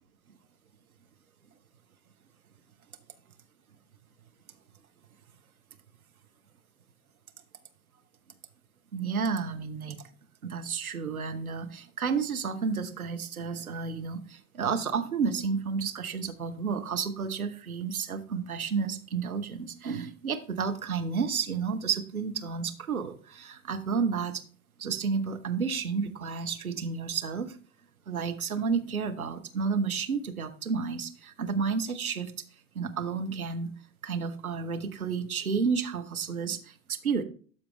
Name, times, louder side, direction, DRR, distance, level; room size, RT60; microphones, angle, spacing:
voice 1, 8.9-10.0 10.4-24.4 24.8-27.6 28.1-32.3 32.7-33.7 34.0-37.2, right 5 dB, 80° right, 6 dB, 1.0 m, -31 dB
12.5 x 4.5 x 3.2 m, 0.42 s
figure-of-eight pair, 80°, 43 cm